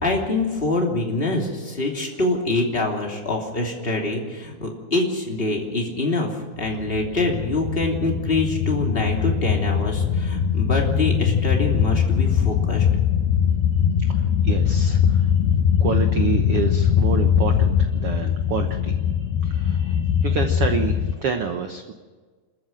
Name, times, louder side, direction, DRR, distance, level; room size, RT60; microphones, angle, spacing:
voice 1, 0.0-6.3 6.6-12.9, left 2 dB, 15° left, 0 dB, 2.7 m, -25 dB
sound 1, 6.6-21.1, left 8 dB, 85° left, 2.7 m, -21 dB
voice 2, 14.0-15.3 15.8-19.0 19.4-21.9, right 6 dB, 75° right, 5 dB, 1.3 m, -28 dB
27.0 x 14.0 x 7.6 m, 1.4 s
omnidirectional pair, 4.2 m